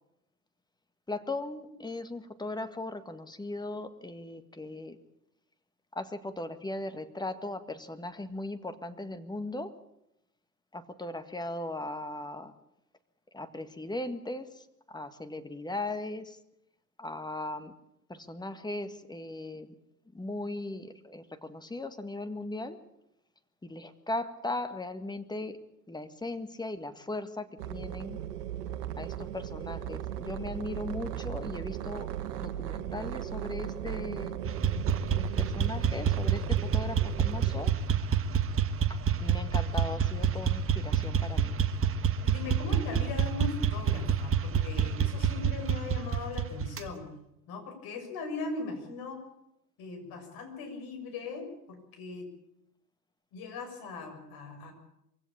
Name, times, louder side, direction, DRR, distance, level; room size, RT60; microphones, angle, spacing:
voice 1, 1.1-5.0 5.9-9.7 10.7-12.5 13.3-16.4 17.0-17.7 18.1-19.7 20.1-22.8 23.6-25.6 25.9-28.2 29.0-32.1 32.4-34.4 35.1-37.7 38.9-41.6, left 2 dB, 10° left, 10 dB, 1.8 m, -38 dB
sound 1, 27.6-37.7, right 11 dB, 70° right, 1.6 m, -37 dB
sound 2, 34.4-46.9, right 7 dB, 30° right, 1.6 m, -28 dB
voice 2, 42.2-47.1 47.5-49.2 49.8-52.3 53.3-54.7, left 4 dB, 50° left, 6 dB, 6.8 m, -39 dB
23.5 x 16.5 x 8.7 m, 0.82 s
hypercardioid pair, 85°, 48 cm